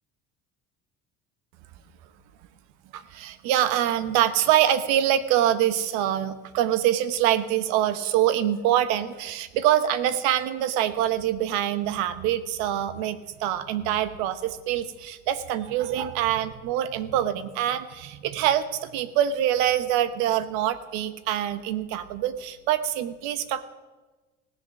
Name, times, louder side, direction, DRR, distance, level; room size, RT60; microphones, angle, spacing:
voice 1, 2.9-23.6, right 11 dB, 70° right, 14 dB, 1.0 m, -25 dB
17.0 x 7.8 x 7.1 m, 1.2 s
cardioid pair, 175°, 31 cm